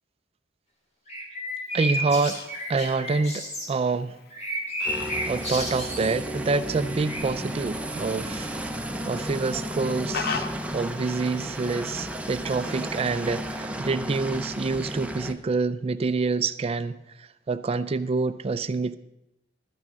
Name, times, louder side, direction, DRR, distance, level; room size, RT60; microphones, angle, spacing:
sound 1, 1.1-3.7 4.3-6.1 7.1-7.2, equal, 35° left, 2.3 m, -32 dB
Fowl, 1.6-13.6, left 5 dB, 55° left, 0.8 m, -42 dB
voice 1, 1.7-2.4 2.7-4.2 4.8-8.5 9.1-19.0, right 4 dB, 30° right, 13 dB, 0.3 m, -27 dB
sound 2, 4.9-15.3, equal, 5° right, 0.7 m, -33 dB
12.5 x 6.2 x 7.4 m, 0.90 s
head